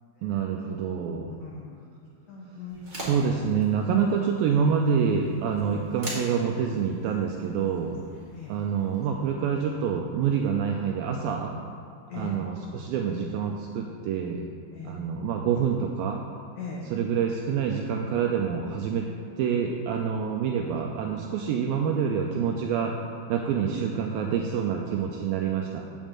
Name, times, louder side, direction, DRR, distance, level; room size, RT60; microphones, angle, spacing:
voice 1, 0.2-1.3 3.0-8.0 8.5-11.5 12.1-14.5 14.9-16.2 16.9-19.1 19.4-22.9 23.3-25.8, right 7 dB, 85° right, 1 dB, 2.1 m, -27 dB
voice 2, 1.4-1.8 2.3-3.2 4.5-4.6 5.7-5.9 8.3-8.6 12.1-12.4 14.7-15.0 16.5-16.9 23.6-23.7, left 4 dB, 90° left, -3 dB, 1.6 m, -40 dB
sound 1, 2.7-9.1, right 1 dB, 20° right, 1.3 m, -43 dB
8.3 x 5.3 x 7.4 m, 2.3 s
omnidirectional pair, 4.7 m